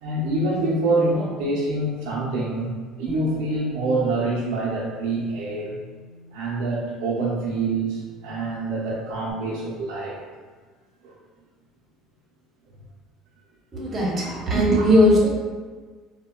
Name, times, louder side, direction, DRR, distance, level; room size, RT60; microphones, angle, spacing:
voice 1, 0.0-2.7 3.0-5.8 6.3-10.2 11.0-11.1 14.2-14.9, right 2 dB, 80° right, -6 dB, 0.5 m, -26 dB
Bass guitar, 3.1-9.3, right 1 dB, 20° left, 0.5 m, -45 dB
voice 2, 13.7-15.3, left 1 dB, 25° right, -4 dB, 0.7 m, -18 dB
3.5 x 2.1 x 2.2 m, 1.4 s
cardioid pair, 140°, 0 cm